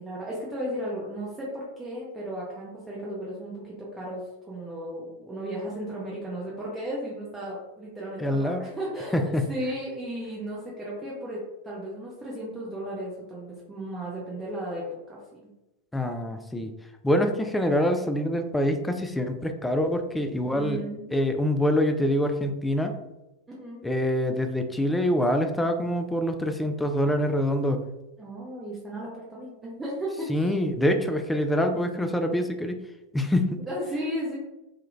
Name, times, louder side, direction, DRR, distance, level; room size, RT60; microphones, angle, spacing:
voice 1, 0.0-15.2 20.4-21.1 23.5-23.8 28.2-30.5 33.7-34.4, equal, 15° right, -5 dB, 0.7 m, -35 dB
voice 2, 8.2-8.6 9.1-9.4 15.9-16.7 17.0-20.8 21.1-22.9 23.8-27.8 30.3-32.7 33.1-33.5, left 1 dB, 5° left, 6 dB, 0.3 m, -25 dB
3.5 x 2.2 x 2.5 m, 0.96 s
figure-of-eight pair, 90°, 0 cm